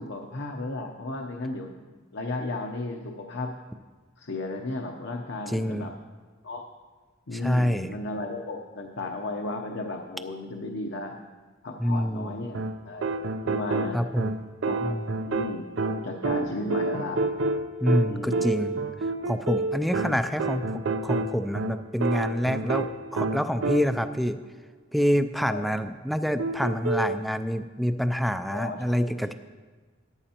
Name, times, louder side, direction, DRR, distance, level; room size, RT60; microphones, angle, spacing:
voice 1, 0.0-1.9 2.1-3.5 4.2-5.9 6.4-6.6 7.3-11.2 11.6-13.2 13.4-14.0 14.6-15.0 15.2-17.2 18.0-18.5 25.5-25.9 28.5-29.1, left 2 dB, 65° left, 2 dB, 0.8 m, -34 dB
voice 2, 5.5-5.9 7.3-7.9 11.8-12.4 13.9-14.4 14.8-15.2 17.8-18.8 19.3-24.4 24.9-29.3, equal, ahead, 10 dB, 0.4 m, -27 dB
sound 1, 12.5-24.2 26.4-27.2, right 3 dB, 75° right, 0.5 m, -29 dB
14.0 x 11.0 x 2.9 m, 1.4 s
head